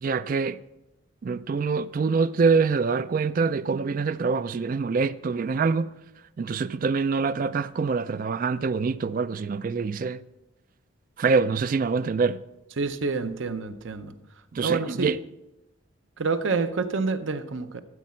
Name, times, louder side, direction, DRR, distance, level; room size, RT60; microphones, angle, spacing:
voice 1, 0.0-0.6 1.2-5.9 6.4-10.2 11.2-12.4 14.5-15.2, right 4 dB, 40° right, 0.3 m, -25 dB
voice 2, 12.8-14.2 14.6-15.1 16.2-17.8, right 4 dB, 65° right, 0.7 m, -28 dB
13.0 x 8.4 x 4.4 m
head